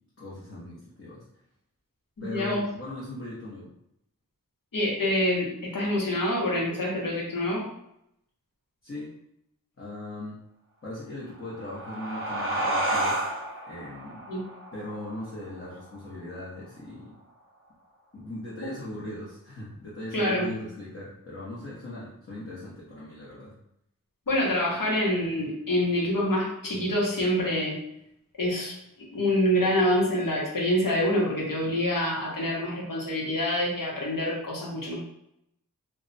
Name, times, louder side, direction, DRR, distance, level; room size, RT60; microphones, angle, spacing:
voice 1, 0.2-1.2 2.2-3.7 8.8-9.1 9.8-10.4 10.8-13.2 13.7-14.2 14.7-17.2 18.1-23.5, left 1 dB, 40° left, -7 dB, 0.9 m, -39 dB
voice 2, 2.2-2.7 4.7-7.6 14.3-14.4 18.6-18.7 20.1-20.5 24.3-27.8 28.4-28.7 29.1-35.0, left 1 dB, 70° left, -4 dB, 1.0 m, -26 dB
sound 1, 11.3-16.5, right 1 dB, 40° right, 0.6 m, -31 dB
2.3 x 2.1 x 3.9 m, 0.77 s
wide cardioid pair, 70°, 34 cm